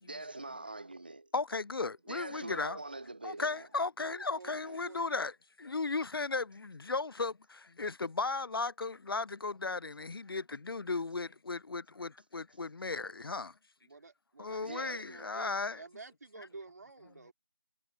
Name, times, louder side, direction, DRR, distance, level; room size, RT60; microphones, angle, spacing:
voice 1, 0.0-1.3 2.1-3.7 14.6-15.2, right 2 dB, 20° right, 0.5 m, -43 dB
voice 2, 1.3-2.8 3.2-13.5 14.4-15.8, left 3 dB, 60° left, 0.4 m, -36 dB
voice 3, 4.0-5.0 13.8-17.3, right 3 dB, 40° right, 2.9 m, -51 dB
figure-of-eight pair, 170°, 13 cm